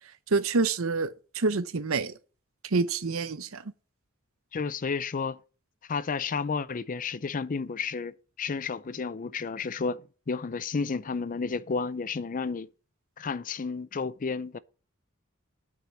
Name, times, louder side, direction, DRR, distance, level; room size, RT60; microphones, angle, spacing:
voice 1, 0.3-2.1 2.7-3.6, right 4 dB, 70° right, 0.8 m, -27 dB
voice 2, 4.5-5.4 5.9-10.0 10.3-12.7 13.2-14.6, left 5 dB, 40° left, 0.4 m, -31 dB
9.1 x 5.9 x 7.1 m
head